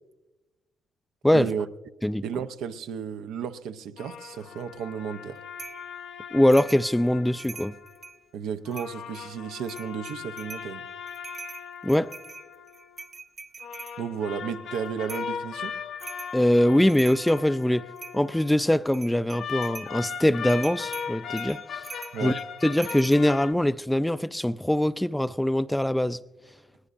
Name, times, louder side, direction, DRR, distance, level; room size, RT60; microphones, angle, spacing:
voice 1, 1.3-1.7 2.2-5.4 8.3-10.9 14.0-15.8 22.1-22.4, right 7 dB, 85° right, 0.6 m, -33 dB
sound 1, 4.0-8.1 8.7-13.1 13.6-18.7 19.3-23.5, left 7 dB, 70° left, 0.8 m, -39 dB
sound 2, 5.6-5.9 6.5-6.9 7.2-8.2 8.7-9.2 9.6-10.7 11.1-14.0 15.1-15.4 16.0-16.4 16.7-17.5 18.0-18.5 18.9-19.9 20.5-23.2, right 4 dB, 45° right, 0.7 m, -43 dB
voice 2, 6.3-7.7 11.8-12.1 16.3-17.8 18.1-21.6 22.2-26.2, left 1 dB, 5° left, 0.3 m, -22 dB
20.5 x 18.5 x 2.5 m
cardioid pair, 90°, 0 cm